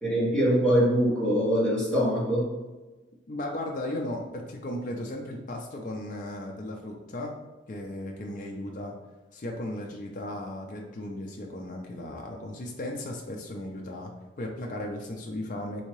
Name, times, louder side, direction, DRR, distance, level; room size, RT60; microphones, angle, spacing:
voice 1, 0.0-2.5, equal, 5° left, -9 dB, 1.2 m, -23 dB
voice 2, 3.3-7.3 7.7-9.0 9.3-14.1 14.4-15.8, left 1 dB, 40° left, 0 dB, 0.4 m, -36 dB
3.5 x 2.8 x 3.0 m, 1.2 s
head